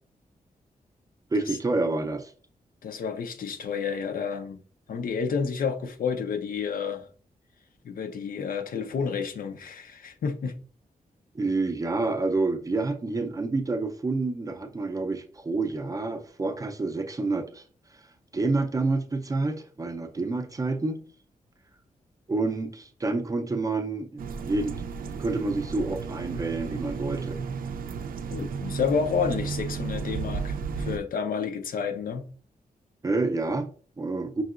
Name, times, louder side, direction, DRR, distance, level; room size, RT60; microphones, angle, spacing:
voice 1, 1.3-2.3 11.3-17.6 18.3-21.0 22.3-24.7 25.0-27.4 33.0-34.4, right 3 dB, 25° right, 0.4 m, -28 dB
voice 2, 2.8-4.6 4.9-7.1 7.8-10.5 28.3-32.3, left 6 dB, 80° left, 0.6 m, -30 dB
sound 1, 24.2-31.0, right 5 dB, 85° right, 0.4 m, -33 dB
5.4 x 2.8 x 2.4 m
wide cardioid pair, 130°, 14 cm